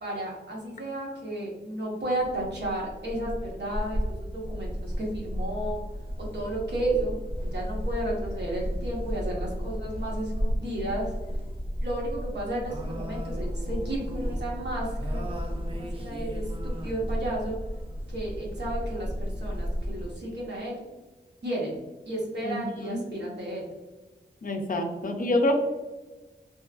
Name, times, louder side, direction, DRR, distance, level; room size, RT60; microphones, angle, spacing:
voice 1, 0.0-5.8 6.2-7.1 7.4-11.1 11.8-17.6 18.1-20.8 21.4-21.8 22.1-23.7, right 1 dB, 70° right, -3 dB, 0.9 m, -33 dB
sound 1, 2.2-20.2, equal, 30° right, 0.5 m, -33 dB
voice 2, 22.4-23.0 24.4-25.6, left 1 dB, 50° left, 4 dB, 0.4 m, -27 dB
3.0 x 2.3 x 2.3 m, 1.2 s
wide cardioid pair, 90°, 19 cm